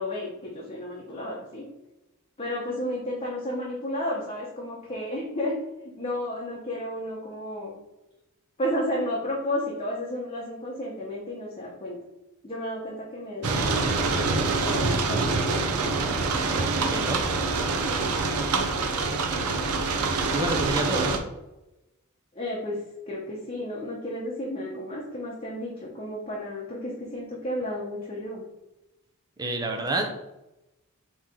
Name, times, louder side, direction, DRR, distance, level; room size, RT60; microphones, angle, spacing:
voice 1, 0.0-1.6 2.4-5.6 5.8-7.7 8.6-12.0 12.4-15.7 17.9-18.2 22.3-28.4, left 1 dB, 25° left, -5 dB, 0.9 m, -32 dB
sound 1, 13.4-21.2, right 3 dB, 90° right, 0.6 m, -25 dB
voice 2, 16.8-17.3 20.3-21.2 29.4-30.1, right 2 dB, 20° right, 3 dB, 0.5 m, -28 dB
4.2 x 3.1 x 3.7 m, 0.97 s
head